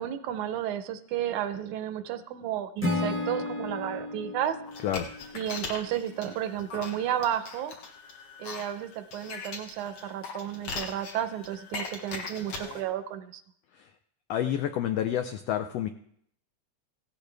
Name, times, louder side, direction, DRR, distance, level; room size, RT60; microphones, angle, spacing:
voice 1, 0.0-4.6 5.3-7.8 8.4-13.4, right 10 dB, 90° right, 10 dB, 2.2 m, -32 dB
Acoustic guitar / Strum, 2.8-6.0, left 2 dB, 10° left, 0.6 m, -33 dB
sound 1, 4.6-12.8, left 4 dB, 60° left, 2.6 m, -40 dB
voice 2, 14.3-15.9, left 10 dB, 75° left, 7 dB, 1.6 m, -29 dB
16.5 x 12.0 x 3.4 m, 0.67 s
omnidirectional pair, 3.3 m